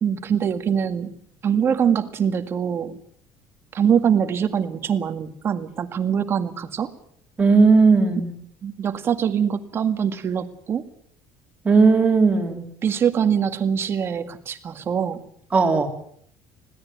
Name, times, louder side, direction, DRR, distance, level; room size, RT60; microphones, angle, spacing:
voice 1, 0.0-1.1 1.4-3.0 3.7-6.9 8.6-10.8 12.8-15.2, right 8 dB, 30° right, 9 dB, 1.9 m, -23 dB
voice 2, 7.4-8.3 11.7-12.6 15.5-15.9, right 4 dB, 15° right, 3 dB, 3.7 m, -16 dB
21.0 x 16.5 x 9.5 m, 0.64 s
cardioid pair, 155°, 8 cm